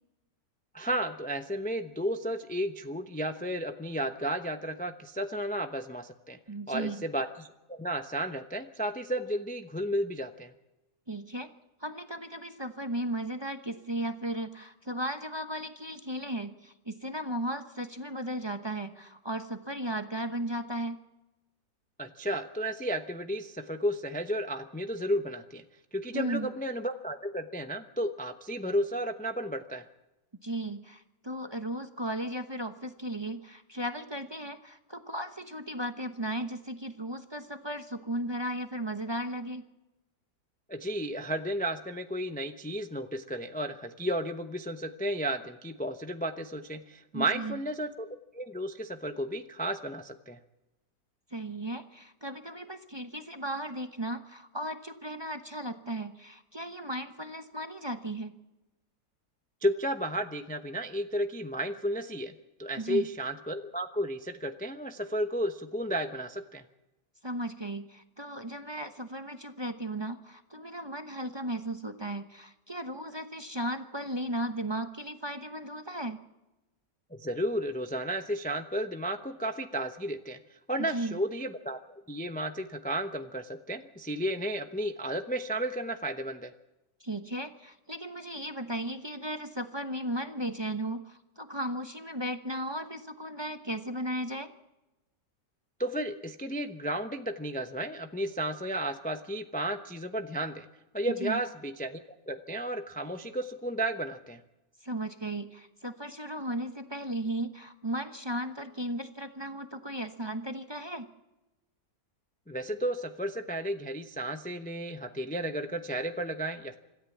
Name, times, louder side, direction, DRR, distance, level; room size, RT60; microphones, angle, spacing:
voice 1, 0.7-6.4 6.7-10.5 22.0-25.6 25.9-29.8 40.7-48.1 48.3-50.4 59.6-66.6 77.1-80.4 80.7-86.5 95.8-100.7 100.9-104.4 112.5-116.8, right 1 dB, 10° left, 7 dB, 0.3 m, -33 dB
voice 2, 6.5-7.0 11.1-11.5 11.8-21.0 26.1-26.5 30.4-39.6 47.1-47.6 51.3-58.3 62.8-63.1 67.2-76.2 80.9-81.2 87.0-94.5 101.2-101.4 104.8-111.1, right 1 dB, 20° right, 7 dB, 0.7 m, -36 dB
26.0 x 13.5 x 7.3 m, 1.0 s
omnidirectional pair, 1.9 m